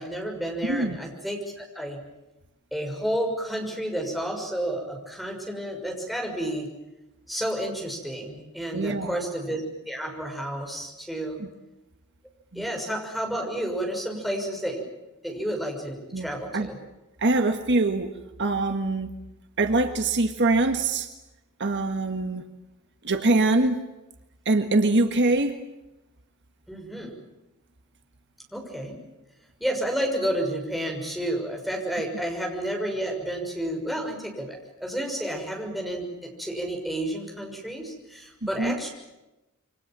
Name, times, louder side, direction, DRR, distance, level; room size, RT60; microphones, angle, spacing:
voice 1, 0.0-2.0 2.7-6.7 7.3-9.6 9.9-11.4 12.5-14.8 15.2-16.8 26.7-27.1 28.5-29.0 29.6-38.9, right 1 dB, ahead, 0 dB, 6.4 m, -31 dB
voice 2, 8.7-9.2 11.4-11.5 12.5-12.6 16.1-16.7 17.2-18.1 18.4-19.1 19.6-21.1 21.6-22.4 23.0-23.8 24.4-25.6 38.4-38.8, right 2 dB, 55° right, 7 dB, 1.6 m, -23 dB
28.0 x 25.0 x 7.6 m, 0.98 s
head